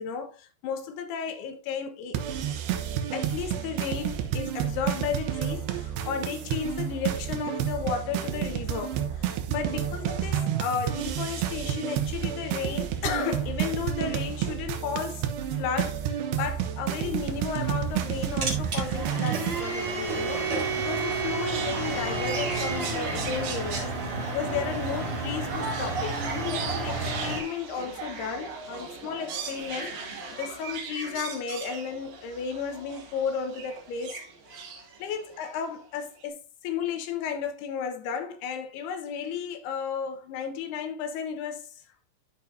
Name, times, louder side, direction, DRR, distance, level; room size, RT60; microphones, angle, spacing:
voice 1, 0.0-2.2 3.1-15.3 15.6-34.2 35.0-36.4 36.6-41.7, left 7 dB, 75° left, 3.1 m, -33 dB
sound 1, 2.2-19.6, right 10 dB, 80° right, 3.0 m, -30 dB
sound 2, 16.9-27.4, right 3 dB, 40° right, 2.7 m, -31 dB
sound 3, 21.5-35.6 36.2-36.3, right 4 dB, 65° right, 3.6 m, -38 dB
13.0 x 5.5 x 2.7 m
omnidirectional pair, 4.8 m